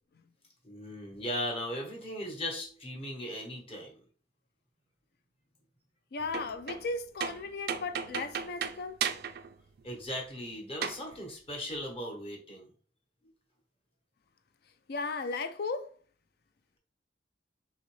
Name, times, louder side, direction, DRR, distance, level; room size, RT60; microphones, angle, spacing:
voice 1, 0.6-3.9 9.8-12.7, left 1 dB, 30° left, 1.1 m, -38 dB
voice 2, 6.1-9.0 14.9-15.9, left 3 dB, 55° left, 0.4 m, -36 dB
sound 1, 6.2-7.0 7.2-9.5 9.8-9.9 10.8-11.0, right 7 dB, 55° right, 0.3 m, -35 dB
4.0 x 2.9 x 3.1 m
head